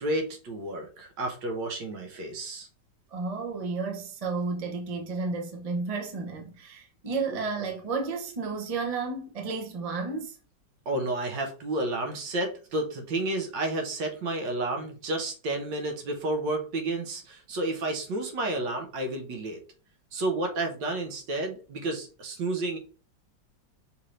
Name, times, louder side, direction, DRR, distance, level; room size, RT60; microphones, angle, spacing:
voice 1, 0.0-2.7 7.3-7.4 10.9-19.6 20.1-22.8, right 2 dB, 75° right, 1.5 m, -31 dB
voice 2, 3.1-10.4, right 4 dB, 50° right, 0.4 m, -32 dB
5.6 x 2.6 x 3.2 m
omnidirectional pair, 2.0 m